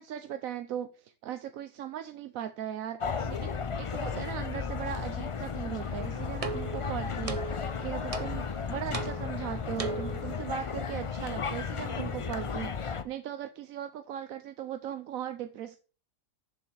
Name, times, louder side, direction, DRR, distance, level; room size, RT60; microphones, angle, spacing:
voice 1, 0.0-15.8, right 10 dB, 85° right, 1.1 m, -38 dB
sound 1, 3.0-13.0, left 6 dB, 50° left, 0.4 m, -34 dB
sound 2, 5.8-10.4, right 4 dB, 30° right, 0.8 m, -39 dB
7.0 x 6.8 x 4.8 m
omnidirectional pair, 1.4 m